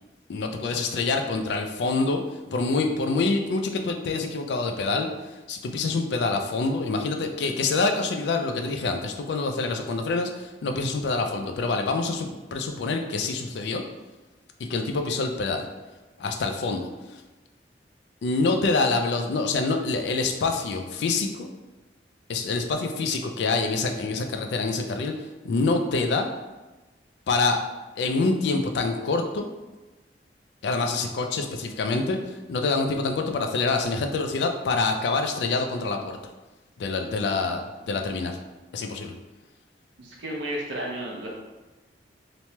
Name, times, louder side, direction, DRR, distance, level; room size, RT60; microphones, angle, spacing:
voice 1, 0.3-2.2 2.5-13.8 14.6-15.7 16.2-17.2 18.2-21.5 22.3-26.3 27.3-27.6 28.0-29.5 30.6-36.2 36.8-38.4 38.7-39.1, left 3 dB, 75° left, 5 dB, 0.3 m, -26 dB
voice 2, 40.0-41.3, right 1 dB, 90° right, -2 dB, 0.7 m, -32 dB
3.0 x 2.1 x 2.8 m, 1.1 s
head